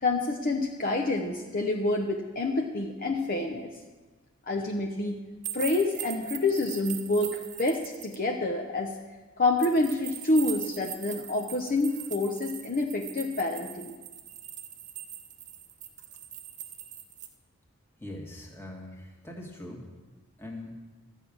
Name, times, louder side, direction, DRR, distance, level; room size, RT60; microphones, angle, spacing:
voice 1, 0.0-3.7 4.5-5.2 5.5-8.9 9.4-13.9, left 2 dB, 40° left, 1 dB, 0.8 m, -28 dB
sound 1, 5.4-8.2 9.6-17.3, right 9 dB, 35° right, 0.9 m, -41 dB
voice 2, 18.0-19.8 20.4-20.7, left 1 dB, 10° left, 0 dB, 1.8 m, -42 dB
13.0 x 6.3 x 8.7 m, 1.3 s
head